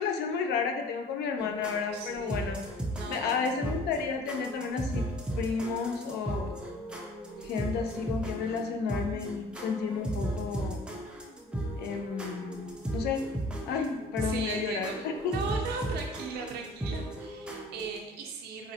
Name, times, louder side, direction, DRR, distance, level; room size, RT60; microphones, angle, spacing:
voice 1, 0.0-2.6 3.1-5.0 5.4-6.6 7.4-10.8 11.8-13.2 13.7-15.3, left 6 dB, 75° left, 5 dB, 0.4 m, -32 dB
sound 1, 1.4-18.0, right 1 dB, 5° right, 0.4 m, -36 dB
voice 2, 1.9-2.5 2.9-3.4 14.2-18.7, right 5 dB, 70° right, 2 dB, 0.6 m, -38 dB
3.8 x 2.0 x 2.7 m, 1.0 s
cardioid pair, 110°, 17 cm